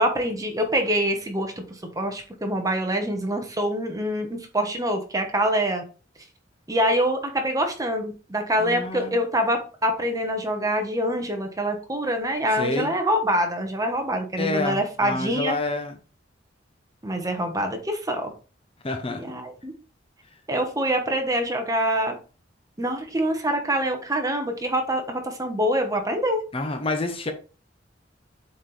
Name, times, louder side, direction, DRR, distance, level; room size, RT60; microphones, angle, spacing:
voice 1, 0.0-1.6 1.9-5.8 6.7-15.6 17.0-18.3 19.1-19.7 20.5-22.1 22.8-26.4, equal, 20° right, 1.2 m, -25 dB
voice 2, 8.6-9.2 12.5-12.9 14.4-16.0 18.8-19.2 26.5-27.3, left 2 dB, 30° left, 0.7 m, -28 dB
7.5 x 4.3 x 3.3 m
head